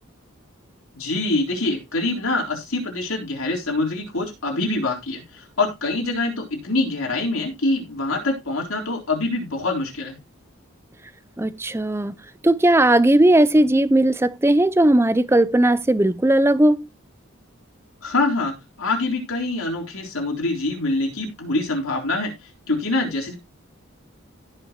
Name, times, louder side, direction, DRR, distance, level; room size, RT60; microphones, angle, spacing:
voice 1, 0.9-10.2 18.0-22.3 22.7-23.3, left 2 dB, 85° left, 3.9 m, -25 dB
voice 2, 11.4-12.1 12.4-16.9, right 1 dB, 10° right, 0.4 m, -17 dB
16.5 x 5.9 x 3.0 m
head